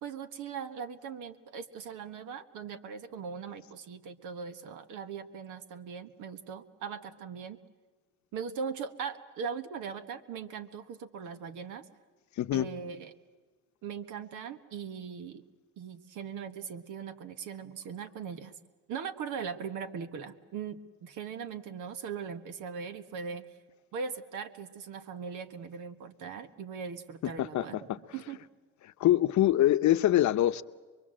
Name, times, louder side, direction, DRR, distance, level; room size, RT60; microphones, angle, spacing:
voice 1, 0.0-7.6 8.3-11.8 12.5-13.1 13.8-15.4 15.8-18.5 18.9-23.4 23.9-27.8 28.1-28.4, right 6 dB, 90° right, 10 dB, 1.4 m, -40 dB
voice 2, 12.4-12.7 27.2-28.0 29.0-30.6, left 13 dB, 70° left, 12 dB, 0.8 m, -25 dB
24.5 x 22.5 x 7.7 m, 1.4 s
cardioid pair, 90°, 30 cm